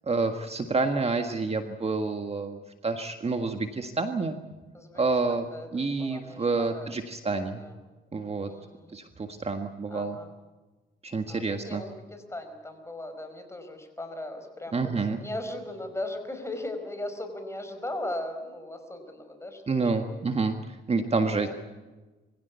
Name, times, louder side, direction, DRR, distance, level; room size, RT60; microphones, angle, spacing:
voice 1, 0.0-4.4 4.9-5.5 5.7-7.6 8.1-8.5 8.9-10.2 11.0-11.8 14.7-15.2 19.7-21.5, right 3 dB, 30° right, 6 dB, 1.7 m, -28 dB
voice 2, 5.3-7.0 7.5-8.0 8.4-9.0 9.9-10.3 11.3-20.2 21.3-21.5, left 1 dB, 15° left, 6 dB, 5.0 m, -38 dB
23.5 x 16.5 x 8.3 m, 1.2 s
cardioid pair, 90°, 20 cm